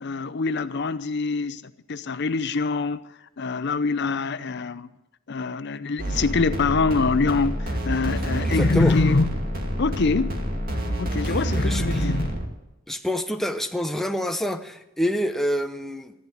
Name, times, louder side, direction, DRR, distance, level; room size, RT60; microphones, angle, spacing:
voice 1, 0.0-1.6 1.9-3.0 3.4-4.9 5.3-9.3 9.8-10.4 11.0-12.4, left 4 dB, 55° left, 0.6 m, -24 dB
sound 1, 6.0-12.4, equal, 45° right, 2.3 m, -27 dB
voice 2, 8.4-8.9 11.2-12.0 12.9-16.1, equal, ahead, 0.7 m, -27 dB
15.0 x 11.5 x 7.8 m
head